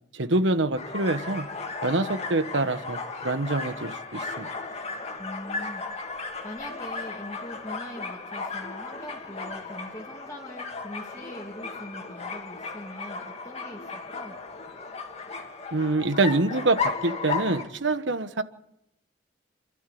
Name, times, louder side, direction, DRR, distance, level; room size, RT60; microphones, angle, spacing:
voice 1, 0.1-1.5 1.8-4.5 15.7-18.4, right 2 dB, 75° right, 11 dB, 1.2 m, -26 dB
sound 1, 0.8-17.6, left 4 dB, 35° left, 2.1 m, -35 dB
voice 2, 5.2-6.1 6.4-14.4, left 1 dB, 20° left, -5 dB, 2.6 m, -42 dB
28.0 x 12.5 x 8.5 m, 0.82 s
head